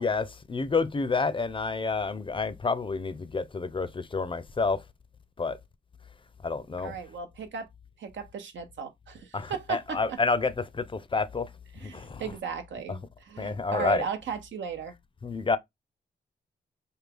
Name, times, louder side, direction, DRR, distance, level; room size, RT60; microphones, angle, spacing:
voice 1, 0.0-4.8 5.4-5.6 6.4-7.0 9.3-11.5 11.8-12.3 12.9-13.0 13.4-14.1 15.2-15.6, left 4 dB, 25° left, 0.4 m, -29 dB
voice 2, 6.8-7.7 8.0-10.0 11.8-13.0 13.3-14.9, right 6 dB, 80° right, 0.7 m, -36 dB
3.4 x 2.3 x 3.3 m
cardioid pair, 65°, 19 cm